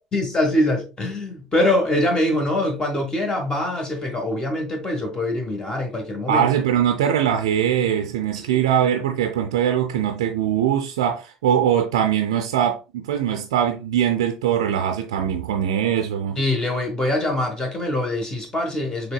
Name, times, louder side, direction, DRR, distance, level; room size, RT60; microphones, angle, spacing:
voice 1, 0.1-6.4 8.4-8.6 16.4-19.1, left 1 dB, 25° left, 1.3 m, -23 dB
voice 2, 6.3-16.4, right 9 dB, 70° right, 0.4 m, -21 dB
6.4 x 3.4 x 2.2 m
figure-of-eight pair, 60°, 3 cm